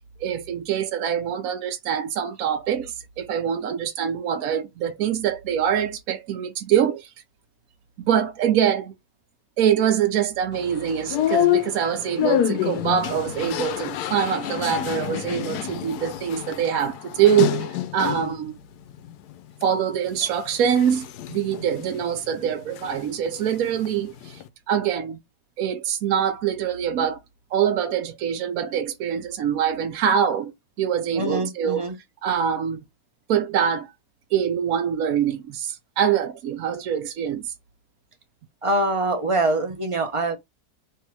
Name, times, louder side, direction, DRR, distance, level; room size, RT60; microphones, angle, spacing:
voice 1, 0.2-7.1 8.0-8.9 9.6-18.5 19.6-24.4 24.7-25.2 25.6-27.2 27.5-30.5 30.8-31.9 32.2-32.8 33.3-33.9 34.3-37.5, right 8 dB, 70° right, 1.0 m, -24 dB
sound 1, 10.5-18.4 18.9-19.7 20.1-23.0 23.3-24.5, left 11 dB, 75° left, 1.1 m, -28 dB
voice 2, 31.2-31.9 38.6-40.4, right 2 dB, 30° right, 0.6 m, -24 dB
3.4 x 2.7 x 4.5 m
omnidirectional pair, 1.7 m